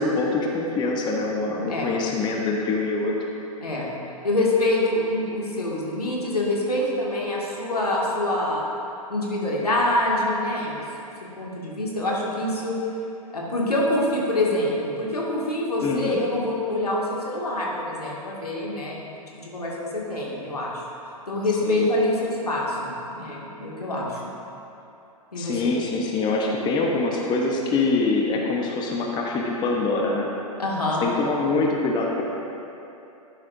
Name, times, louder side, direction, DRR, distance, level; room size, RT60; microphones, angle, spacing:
voice 1, 0.0-3.1 15.8-16.2 21.6-21.9 25.3-30.3 31.0-32.2, left 3 dB, 25° left, -1 dB, 1.0 m, -24 dB
voice 2, 4.2-8.6 9.1-10.8 11.4-12.8 13.3-19.1 19.4-20.7 21.3-24.2 25.3-25.7 30.6-31.0, left 1 dB, 85° left, -4 dB, 2.2 m, -25 dB
12.0 x 10.5 x 2.7 m, 2.9 s
figure-of-eight pair, 110°, 19 cm